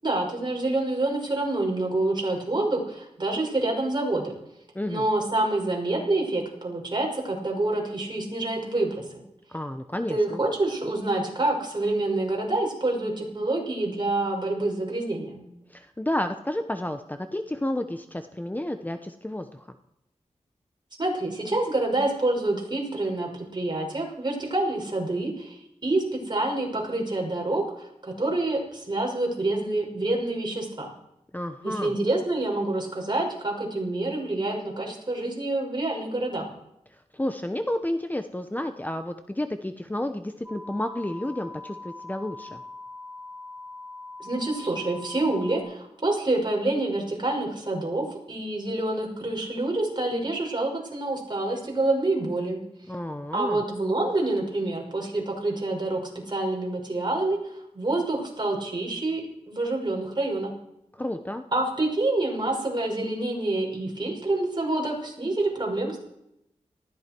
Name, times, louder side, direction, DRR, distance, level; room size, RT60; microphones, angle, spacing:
voice 1, 0.0-4.3 4.8-9.2 10.1-15.5 21.0-30.9 31.6-36.4 44.2-52.6 53.3-56.0 56.3-57.4 57.7-60.5 61.5-66.0, right 2 dB, 35° right, 0 dB, 5.9 m, -27 dB
voice 2, 9.5-10.4 15.7-19.7 31.3-31.9 37.1-42.6 52.9-53.6 60.9-61.4, left 1 dB, 15° left, 8 dB, 1.0 m, -31 dB
sound 1, 40.4-45.6, left 2 dB, 10° right, 2.7 m, -42 dB
19.0 x 15.0 x 4.6 m, 0.83 s
cardioid pair, 60°, 12 cm